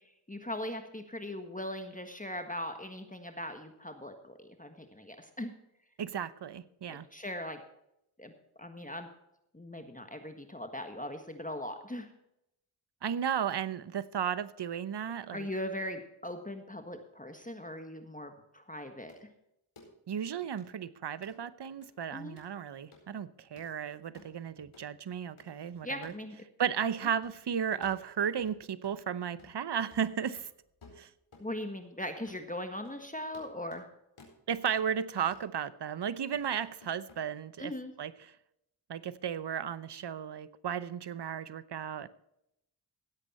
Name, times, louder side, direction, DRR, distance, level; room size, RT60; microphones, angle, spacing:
voice 1, 0.3-5.5 6.9-7.6 8.2-8.3 8.6-9.1 9.5-12.1 15.3-19.3 22.1-22.4 25.8-26.3 31.4-33.9 37.6-37.9, left 1 dB, 15° left, 1.5 m, -40 dB
voice 2, 6.0-7.1 13.0-15.5 20.1-26.1 26.6-30.5 31.0-31.1 34.5-38.4 38.9-42.1, right 8 dB, 55° right, 0.9 m, -34 dB
sound 1, 19.1-19.2 19.8-19.9 20.6-20.7 21.2-21.3 21.8-21.9 22.4-22.5 22.9-23.1 23.6-23.7 24.1-24.4 24.7-24.9 25.4-25.5 26.0-26.2 26.6-26.7 27.2-27.4 27.8-29.0 29.4-29.7 29.9-31.5 31.8-31.9 32.3-32.5 32.8-33.0 33.3-33.9 34.2-34.9 35.3-35.5 36.0-37.2, left 3 dB, 75° left, 4.4 m, -56 dB
16.5 x 8.1 x 4.3 m
cardioid pair, 50°, 50 cm